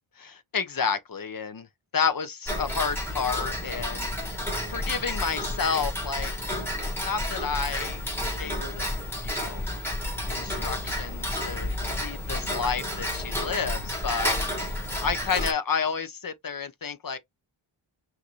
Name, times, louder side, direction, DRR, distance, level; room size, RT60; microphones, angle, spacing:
voice 1, 0.2-1.7 1.9-4.0 4.7-6.3 7.0-8.0 8.4-8.9 9.2-9.6 10.3-14.7 15.0-17.2, left 5 dB, 45° left, 0.9 m, -30 dB
Tick-tock, 2.5-15.5, left 1 dB, 5° left, 1.9 m, -31 dB
5.7 x 2.8 x 3.1 m
wide cardioid pair, 80°, 49 cm